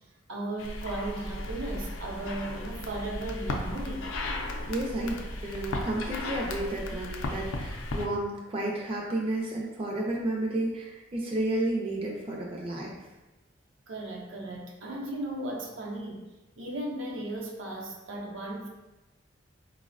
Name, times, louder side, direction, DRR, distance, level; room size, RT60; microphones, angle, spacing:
voice 1, 0.3-4.1 13.9-16.2 16.6-18.7, right 1 dB, 75° right, -1 dB, 0.6 m, -36 dB
sound 1, 0.6-8.1, left 2 dB, 85° left, 0.4 m, -35 dB
voice 2, 4.7-12.9, right 1 dB, 30° right, -3 dB, 0.4 m, -32 dB
3.9 x 2.0 x 2.5 m, 1.1 s
head